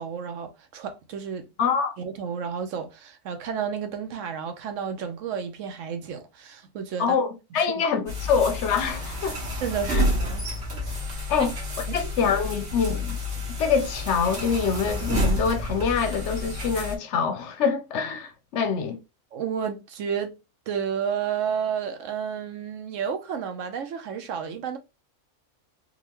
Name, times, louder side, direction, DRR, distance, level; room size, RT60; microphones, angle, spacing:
voice 1, 0.0-1.5 2.0-7.2 7.6-7.7 8.0-8.4 9.6-10.4 11.1-11.5 11.9-12.0 19.3-20.3 20.7-24.8, right 7 dB, 75° right, 1.0 m, -31 dB
voice 2, 1.6-1.9 7.0-9.4 9.9-10.0 11.3-11.5 11.9-13.2 13.6-19.0, left 6 dB, 70° left, 0.8 m, -25 dB
sound 1, 8.1-17.0, left 1 dB, 60° right, 1.5 m, -29 dB
3.8 x 2.4 x 2.9 m
omnidirectional pair, 1.4 m